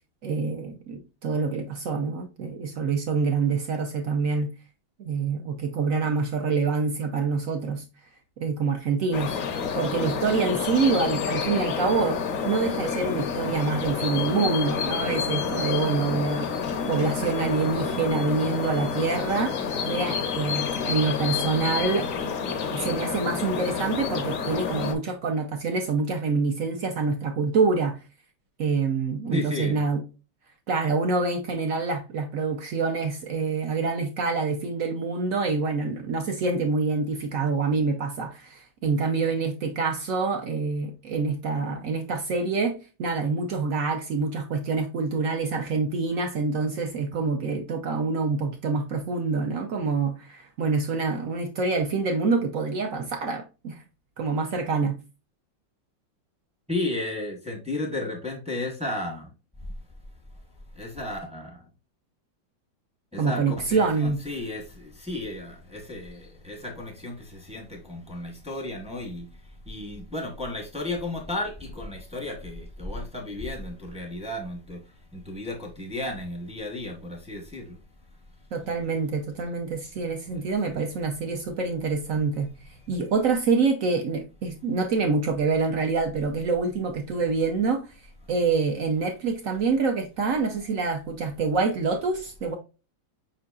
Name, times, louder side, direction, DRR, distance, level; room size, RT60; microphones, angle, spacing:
voice 1, 0.2-4.5 5.0-7.8 8.4-9.4 9.7-22.1 22.7-28.0 28.6-30.0 30.7-53.8 54.2-55.0 63.2-64.2 78.5-82.5 82.9-87.8 88.3-92.5, right 4 dB, 70° right, 0.8 m, -26 dB
sound 1, 9.1-24.9, left 6 dB, 65° left, 0.8 m, -29 dB
voice 2, 29.3-29.9 56.7-59.3 60.7-61.6 63.1-77.8 78.6-78.7 80.2-80.4 80.7-80.8, left 2 dB, 5° right, 0.6 m, -34 dB
5.3 x 3.9 x 2.3 m
omnidirectional pair, 2.1 m